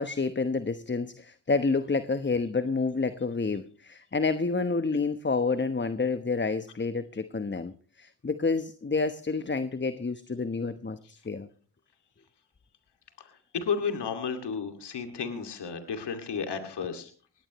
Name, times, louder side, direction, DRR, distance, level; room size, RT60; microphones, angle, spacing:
voice 1, 0.0-11.5, left 4 dB, 25° left, 11 dB, 1.1 m, -29 dB
voice 2, 13.5-17.1, left 6 dB, 80° left, 6 dB, 2.4 m, -32 dB
19.5 x 17.0 x 3.1 m, 0.40 s
cardioid pair, 50°, 40 cm